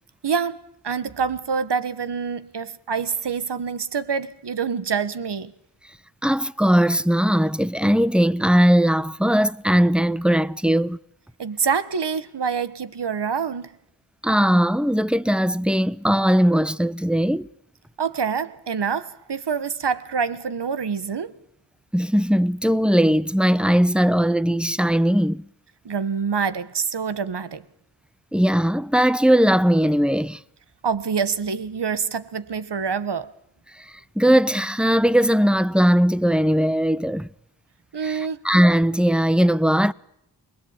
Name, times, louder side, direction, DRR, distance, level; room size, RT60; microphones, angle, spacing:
voice 1, 0.2-5.5 11.4-13.7 18.0-21.4 25.8-27.6 30.8-33.3 37.9-38.4, right 6 dB, 80° right, 1.6 m, -26 dB
voice 2, 6.2-11.0 14.2-17.5 21.9-25.4 28.3-30.4 34.2-37.3 38.0-39.9, equal, ahead, 0.9 m, -19 dB
27.5 x 21.5 x 9.0 m
cardioid pair, 55°, 41 cm